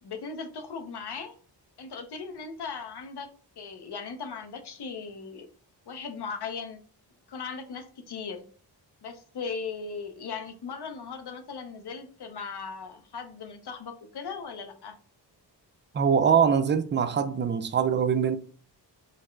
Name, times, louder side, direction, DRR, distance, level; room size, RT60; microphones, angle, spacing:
voice 1, 0.0-1.3 1.8-3.3 3.6-5.5 5.9-6.8 7.3-8.4 9.0-15.0, left 5 dB, 65° left, 0.8 m, -38 dB
voice 2, 15.9-18.4, right 7 dB, 25° right, 0.4 m, -23 dB
4.0 x 2.1 x 4.5 m
wide cardioid pair, 100°, 44 cm